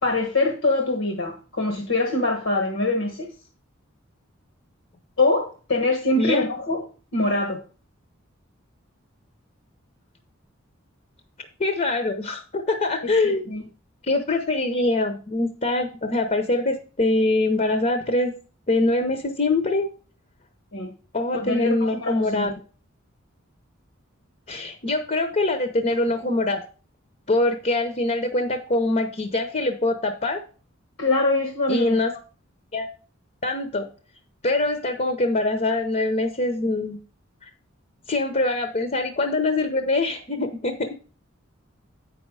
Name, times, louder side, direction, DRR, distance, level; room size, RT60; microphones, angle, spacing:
voice 1, 0.0-3.3 5.2-6.8 7.1-7.6 13.0-13.6 20.7-20.9 21.4-22.5 31.0-32.0, left 2 dB, 75° left, 2 dB, 1.3 m, -24 dB
voice 2, 6.2-6.5 11.6-13.4 14.0-18.3 18.7-19.9 21.1-22.5 24.5-26.6 27.3-30.4 31.7-32.1 32.7-32.9 33.4-33.9 34.4-37.0 37.4-37.5 38.1-41.0, left 2 dB, 35° left, 7 dB, 0.8 m, -23 dB
8.2 x 5.5 x 4.8 m, 0.38 s
head